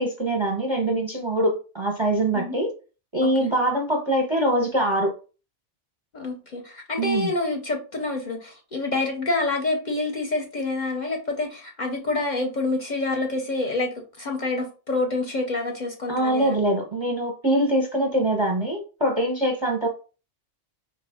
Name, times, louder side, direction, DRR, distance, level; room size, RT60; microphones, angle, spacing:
voice 1, 0.0-2.7 3.1-5.1 7.0-7.3 16.1-19.9, right 1 dB, 30° right, 1 dB, 0.5 m, -23 dB
voice 2, 6.1-16.8, left 2 dB, 45° left, 2 dB, 0.7 m, -27 dB
4.6 x 2.4 x 3.4 m, 0.35 s
omnidirectional pair, 1.3 m